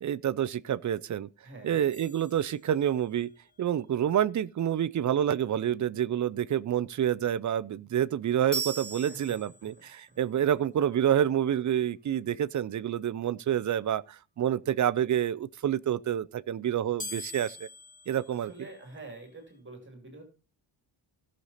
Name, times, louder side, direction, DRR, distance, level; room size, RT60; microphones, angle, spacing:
voice 1, 0.0-1.3 1.6-3.3 3.6-17.7 18.1-18.5, right 10 dB, 40° right, 0.4 m, -28 dB
voice 2, 1.4-1.8 9.1-9.2 10.1-10.2 10.5-10.6 18.3-20.2, right 2 dB, 25° right, 2.6 m, -46 dB
sound 1, 1.9-3.2 8.5-10.0 17.0-19.1, right 2 dB, 15° left, 4.1 m, -40 dB
16.5 x 6.5 x 4.1 m
wide cardioid pair, 175°, 46 cm